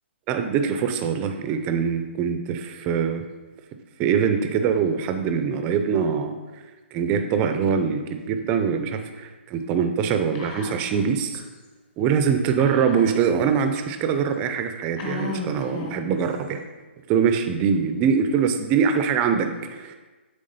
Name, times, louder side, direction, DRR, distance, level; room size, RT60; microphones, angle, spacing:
voice 1, 0.3-3.2 4.0-6.4 6.9-11.4 12.0-16.6 17.1-20.0, right 7 dB, 20° right, 7 dB, 0.5 m, -23 dB
Whispering, 10.3-11.1 11.3-11.4 12.6-13.4 14.1-14.2 15.0-16.2, left 3 dB, 30° left, 0.9 m, -34 dB
7.8 x 3.5 x 5.3 m, 1.2 s
hypercardioid pair, 155°, 7 cm